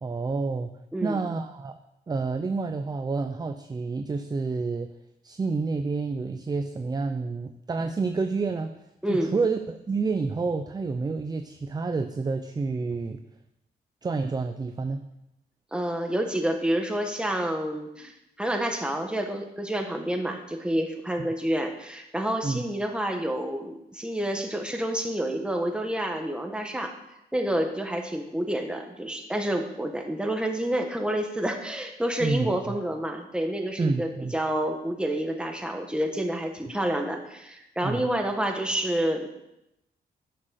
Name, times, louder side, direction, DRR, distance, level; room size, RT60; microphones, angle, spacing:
voice 1, 0.0-0.7 1.0-1.8 2.1-4.9 5.2-8.7 9.1-13.2 14.0-15.1 22.4-22.6 32.2-32.8 33.8-34.3 37.8-38.1, right 4 dB, 25° right, 7 dB, 0.6 m, -29 dB
voice 2, 0.9-1.3 9.0-9.3 15.7-26.9 27.3-39.3, right 1 dB, 5° right, 3 dB, 1.5 m, -29 dB
11.0 x 6.4 x 6.5 m, 0.86 s
cardioid pair, 120°, 17 cm